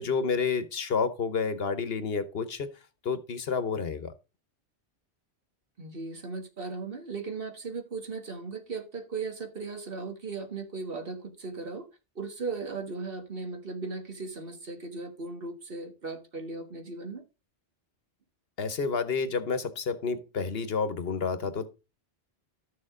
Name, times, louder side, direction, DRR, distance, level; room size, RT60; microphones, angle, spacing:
voice 1, 0.0-2.7 3.0-4.1 18.6-21.7, left 5 dB, 60° left, 1.1 m, -30 dB
voice 2, 5.8-11.9 12.1-17.2, right 4 dB, 55° right, 1.7 m, -37 dB
12.5 x 6.6 x 3.7 m
omnidirectional pair, 1.2 m